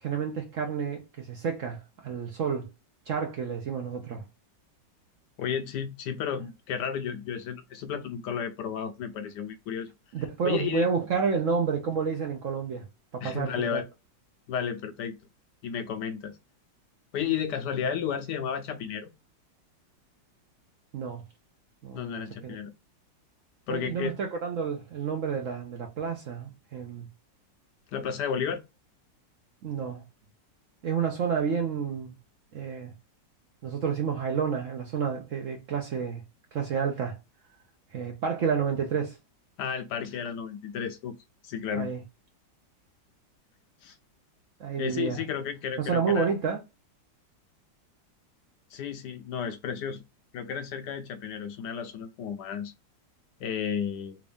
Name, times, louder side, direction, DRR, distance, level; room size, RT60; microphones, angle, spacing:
voice 1, 0.0-2.7 3.1-4.2 10.1-12.8 13.1-13.8 20.9-21.2 21.8-22.6 23.7-27.1 29.6-30.0 30.8-32.1 32.5-32.9 33.6-36.2 36.5-37.2 37.9-39.2 41.7-42.0 44.6-45.2 45.8-46.6, right 6 dB, 60° right, 0.8 m, -30 dB
voice 2, 5.4-9.9 10.4-10.9 13.2-13.9 14.5-15.2 15.6-16.4 17.1-19.1 21.9-22.7 23.7-24.1 27.9-28.6 39.6-41.2 41.4-41.9 43.8-44.0 44.8-46.3 48.7-50.0 50.3-52.7 53.4-54.2, left 7 dB, 75° left, 1.1 m, -32 dB
3.4 x 2.6 x 3.3 m
omnidirectional pair, 2.0 m